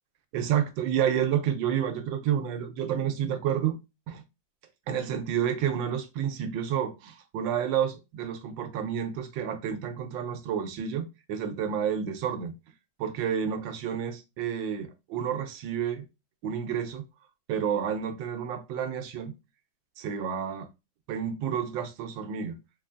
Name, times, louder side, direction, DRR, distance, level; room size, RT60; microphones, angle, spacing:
voice 1, 0.3-3.8 4.1-4.2 4.9-12.5 13.0-16.0 16.4-17.0 17.5-19.3 20.0-20.7 21.1-22.6, right 8 dB, 75° right, 1.3 m, -30 dB
3.8 x 3.0 x 2.5 m
omnidirectional pair, 2.1 m